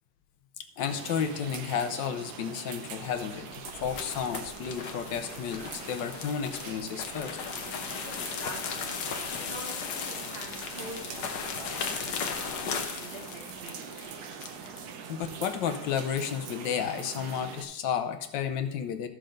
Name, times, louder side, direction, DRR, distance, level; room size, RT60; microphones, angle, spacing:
voice 1, 0.8-3.5 3.8-7.4 15.1-19.1, left 8 dB, 80° left, 8 dB, 1.5 m, -32 dB
sound 1, 0.8-17.6, right 6 dB, 65° right, 1.2 m, -43 dB
sound 2, 3.2-14.8, left 6 dB, 65° left, 1.4 m, -37 dB
voice 2, 8.0-9.0 9.3-11.7 12.1-14.1, right 1 dB, 35° right, 0 dB, 1.2 m, -45 dB
13.0 x 6.4 x 3.9 m, 0.81 s
omnidirectional pair, 2.0 m